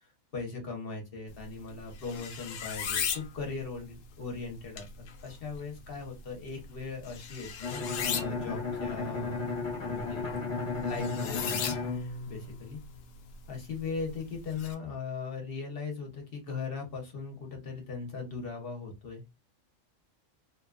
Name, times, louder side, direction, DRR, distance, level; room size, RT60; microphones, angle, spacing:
voice 1, 0.3-9.5 9.8-10.4 10.8-12.8 13.5-19.4, left 4 dB, 50° left, 2 dB, 0.9 m, -39 dB
sound 1, 1.3-14.7, left 7 dB, 80° left, 0.9 m, -40 dB
Bowed string instrument, 7.6-13.3, left 4 dB, 25° left, 1.0 m, -35 dB
2.7 x 2.2 x 2.4 m, 0.23 s
omnidirectional pair, 1.3 m